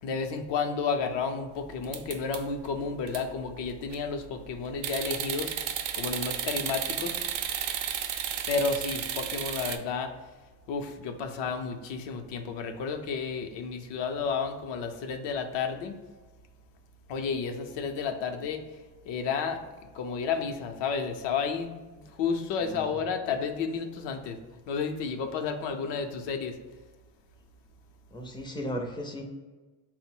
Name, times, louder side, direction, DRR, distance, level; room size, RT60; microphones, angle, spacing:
voice 1, 0.0-7.2 8.5-10.1 10.7-15.9 17.1-18.6 19.0-19.6 19.9-24.4 24.7-26.6, left 5 dB, 65° left, 6 dB, 0.6 m, -31 dB
sound 1, 1.8-2.7 3.1-3.2 3.7-4.1 4.8-9.8, right 9 dB, 80° right, 0.6 m, -33 dB
voice 2, 28.1-29.2, equal, 10° left, 2 dB, 0.4 m, -36 dB
3.9 x 2.1 x 4.3 m, 1.3 s
cardioid pair, 130°, 47 cm